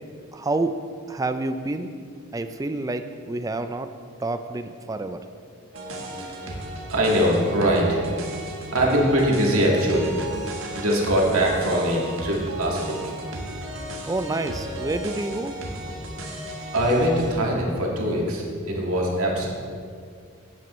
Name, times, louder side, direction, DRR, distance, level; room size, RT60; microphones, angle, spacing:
voice 1, 0.3-0.8 1.1-1.9 2.3-3.9 4.2-5.3 14.1-15.6, right 2 dB, 15° right, 9 dB, 0.3 m, -28 dB
sound 1, 5.7-17.3, right 1 dB, 60° right, 1.4 m, -34 dB
voice 2, 6.0-6.6 6.9-8.0 8.7-10.2 10.7-13.1 16.7-19.5, equal, 80° right, -2 dB, 1.9 m, -22 dB
13.0 x 9.1 x 3.1 m, 2.2 s
head